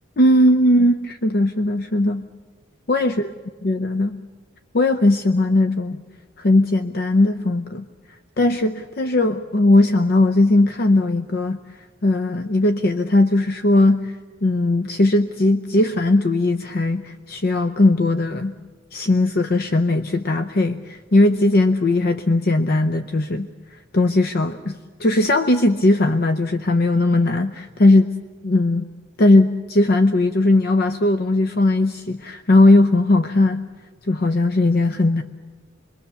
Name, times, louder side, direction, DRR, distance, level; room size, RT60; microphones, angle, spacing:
voice 1, 0.2-2.2 2.9-3.3 3.6-4.2 4.7-6.0 6.4-7.9 8.4-11.6 12.0-18.5 18.9-23.5 23.9-28.1 28.4-28.9 29.2-33.6 34.0-35.2, left 2 dB, 55° left, 10 dB, 0.7 m, -18 dB
25.5 x 22.0 x 6.9 m, 1.4 s
head